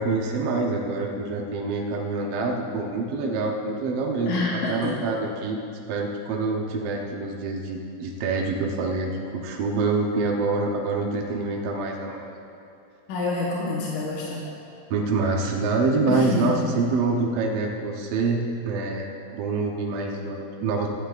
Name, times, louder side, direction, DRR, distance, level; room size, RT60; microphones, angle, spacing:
voice 1, 0.0-5.6 5.9-12.2 14.9-20.9, right 3 dB, 70° right, 0 dB, 1.6 m, -26 dB
voice 2, 4.3-4.9 13.1-14.4 16.1-16.5, left 3 dB, 90° left, -5 dB, 2.7 m, -27 dB
18.0 x 13.0 x 2.4 m, 2.7 s
omnidirectional pair, 3.4 m